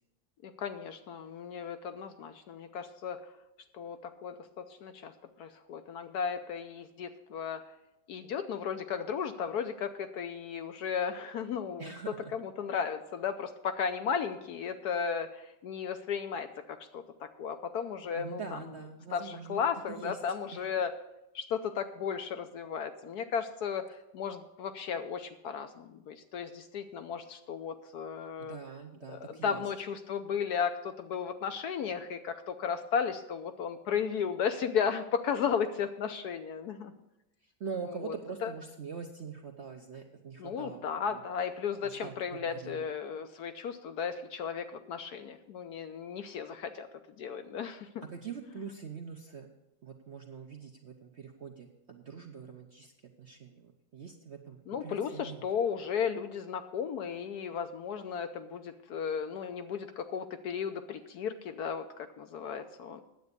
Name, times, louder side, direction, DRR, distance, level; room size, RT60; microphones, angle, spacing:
voice 1, 0.4-3.2 3.7-5.1 5.4-7.6 8.1-11.9 12.3-18.6 19.1-20.9 21.3-28.6 29.1-36.9 37.9-38.1 38.4-38.5 40.4-46.9 47.2-47.9 54.7-63.0, left 7 dB, 70° left, 8 dB, 1.1 m, -35 dB
voice 2, 11.8-12.3 18.1-20.2 20.5-20.6 28.4-29.7 37.4-41.2 41.8-42.8 48.1-49.5 49.8-52.9 53.2-55.4, right 6 dB, 55° right, 3 dB, 0.7 m, -44 dB
9.6 x 8.0 x 6.7 m, 0.91 s
omnidirectional pair, 2.0 m